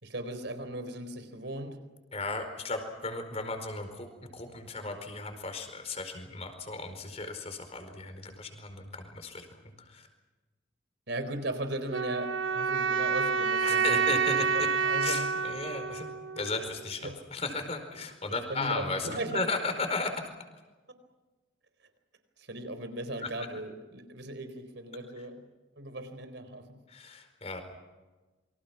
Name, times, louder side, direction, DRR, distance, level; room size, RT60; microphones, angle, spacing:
voice 1, 0.0-1.8 11.1-14.1 14.5-15.3 17.0-17.1 18.5-19.4 22.4-25.3 25.8-26.8, right 1 dB, 70° right, 9 dB, 4.1 m, -37 dB
voice 2, 2.1-10.1 13.6-14.7 15.0-16.1 16.4-20.1 23.2-23.3 26.9-27.6, left 3 dB, 35° left, 7 dB, 4.7 m, -35 dB
sound 1, 11.9-16.9, right 5 dB, 90° right, 1.0 m, -28 dB
28.5 x 25.0 x 6.1 m, 1.2 s
head